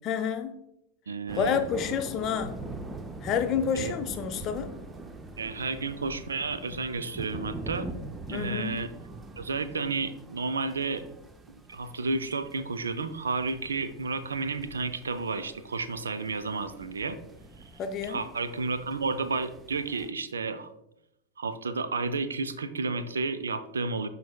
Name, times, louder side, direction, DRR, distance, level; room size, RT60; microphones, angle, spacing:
voice 1, 0.0-0.6 1.4-2.7 3.2-4.7 8.3-8.8 17.8-18.2, left 7 dB, 35° left, 9 dB, 0.7 m, -29 dB
voice 2, 1.1-1.7 2.4-2.5 3.7-3.9 5.4-7.9 8.3-8.9 9.4-11.0 11.5-17.2 17.6-17.7 18.1-20.7 21.4-24.1, right 4 dB, 70° right, 12 dB, 0.5 m, -32 dB
sound 1, 1.3-20.1, right 2 dB, 15° right, 0.5 m, -43 dB
12.0 x 4.1 x 2.3 m, 0.82 s
figure-of-eight pair, 90°, 0 cm